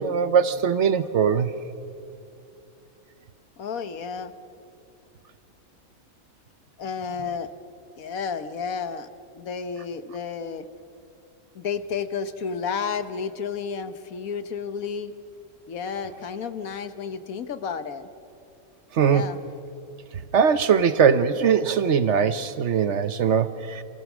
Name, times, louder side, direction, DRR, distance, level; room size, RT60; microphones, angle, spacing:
voice 1, 0.0-1.5 18.9-19.3 20.3-23.8, right 7 dB, 60° right, 12 dB, 1.1 m, -21 dB
voice 2, 3.6-4.3 6.8-7.5 8.0-9.1 9.3-10.7 11.5-15.1 15.7-18.1 19.0-19.4, left 6 dB, 90° left, 11 dB, 1.5 m, -31 dB
28.5 x 24.5 x 6.2 m, 2.7 s
omnidirectional pair, 1.4 m